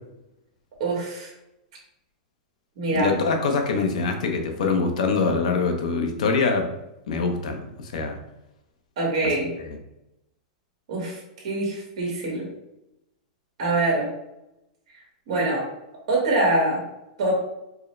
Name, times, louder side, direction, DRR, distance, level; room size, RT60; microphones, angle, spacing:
voice 1, 0.8-1.3 2.8-3.1 9.0-9.5 10.9-12.5 13.6-14.1 14.9-15.6 16.1-16.8 17.2-17.4, right 2 dB, 50° right, -2 dB, 1.5 m, -24 dB
voice 2, 2.9-6.7 7.1-8.2, left 4 dB, 70° left, 3 dB, 0.7 m, -24 dB
4.7 x 2.1 x 3.2 m, 0.90 s
supercardioid pair, 180°, 4 cm